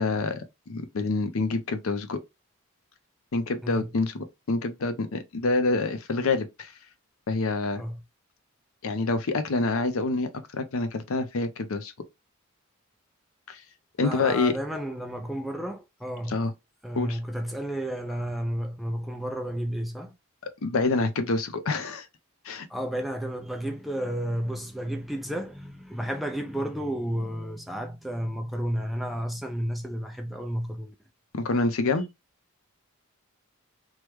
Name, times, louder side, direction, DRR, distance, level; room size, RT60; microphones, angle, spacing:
voice 1, 0.0-2.2 3.3-6.7 7.3-7.8 8.8-11.9 13.5-13.6 14.0-14.5 16.3-16.5 17.0-17.2 20.6-22.1 22.4-22.7 31.3-32.1, left 3 dB, 70° left, 0.5 m, -27 dB
voice 2, 14.0-16.4 16.8-20.1 22.7-30.9, equal, ahead, 0.3 m, -32 dB
3.1 x 2.1 x 3.3 m
head